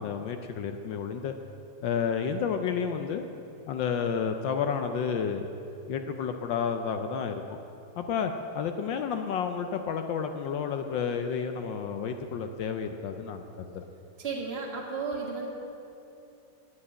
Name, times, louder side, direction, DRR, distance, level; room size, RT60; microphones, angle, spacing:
voice 1, 0.0-1.3 1.8-3.2 3.7-5.5 5.9-7.6 8.0-13.8, left 6 dB, 70° left, 6 dB, 1.2 m, -31 dB
voice 2, 14.2-15.5, right 4 dB, 30° right, -1 dB, 1.7 m, -33 dB
10.0 x 8.2 x 8.6 m, 2.9 s
omnidirectional pair, 2.3 m